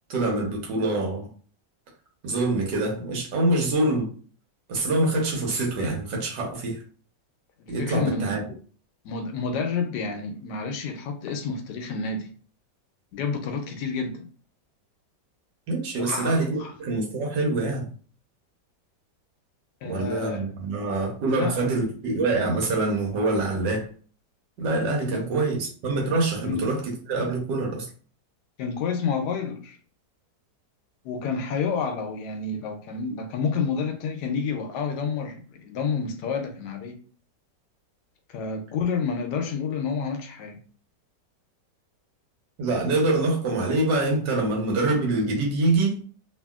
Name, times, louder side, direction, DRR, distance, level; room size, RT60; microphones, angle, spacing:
voice 1, 0.1-1.3 2.2-4.1 4.7-6.8 7.7-8.4 15.7-17.9 19.8-23.9 24.6-27.9 42.6-46.0, right 2 dB, 80° right, 1.5 m, -25 dB
voice 2, 7.6-8.6 9.0-12.3 13.1-14.3 16.0-16.7 19.8-20.5 21.2-21.7 25.1-25.2 26.4-26.6 28.6-29.8 31.0-36.9 38.3-40.6, left 5 dB, 75° left, 1.1 m, -29 dB
2.9 x 2.7 x 2.3 m
omnidirectional pair, 1.9 m